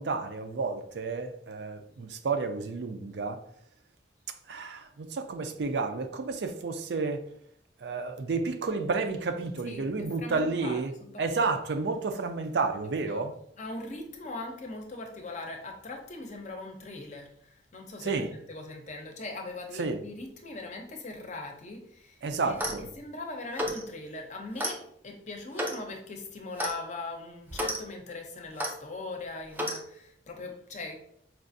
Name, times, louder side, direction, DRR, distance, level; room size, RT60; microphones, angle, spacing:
voice 1, 0.0-3.4 4.5-7.2 7.8-10.9 11.2-13.3 18.0-18.3 19.8-20.0 22.2-22.9, right 4 dB, 75° right, 0.5 m, -31 dB
voice 2, 9.7-11.5 13.1-13.2 13.6-22.6 23.0-30.9, left 2 dB, 45° left, 0.6 m, -40 dB
Clock, 22.5-22.9 23.5-23.8 24.6-24.8 25.6-25.8 26.6-26.8 27.5-27.8 28.6-28.7 29.6-29.8, equal, 10° right, 0.4 m, -32 dB
4.5 x 2.4 x 2.6 m
head